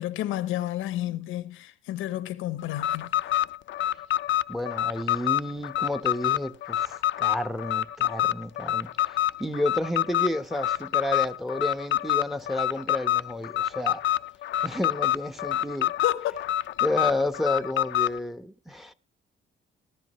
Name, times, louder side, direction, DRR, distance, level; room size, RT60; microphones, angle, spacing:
voice 1, 0.0-3.1 16.0-16.4, left 13 dB, 90° left, 1.0 m, -31 dB
Alarm, 2.7-18.2, left 13 dB, 70° left, 0.6 m, -27 dB
voice 2, 4.5-14.0 14.6-15.9 16.8-18.9, left 1 dB, ahead, 1.1 m, -31 dB
19.0 x 12.0 x 3.1 m
cardioid pair, 90°, 20 cm